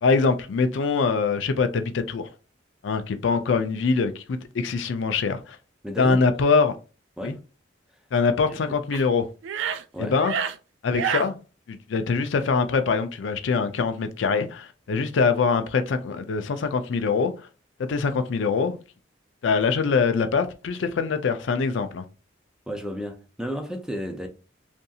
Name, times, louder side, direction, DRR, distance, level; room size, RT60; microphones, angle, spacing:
voice 1, 0.0-2.3 2.8-5.6 6.0-6.7 7.2-7.4 8.1-9.3 10.0-10.3 10.8-11.4 11.7-17.5 17.9-18.8 19.4-22.0, left 4 dB, 80° left, 0.4 m, -23 dB
voice 2, 5.8-6.2 7.2-7.4 8.7-8.8 9.9-10.2 22.7-24.3, equal, 5° right, 0.4 m, -32 dB
sound 1, 8.9-9.0 9.4-9.8 10.2-10.6 10.9-11.3, right 7 dB, 80° right, 0.3 m, -27 dB
2.7 x 2.6 x 2.3 m
head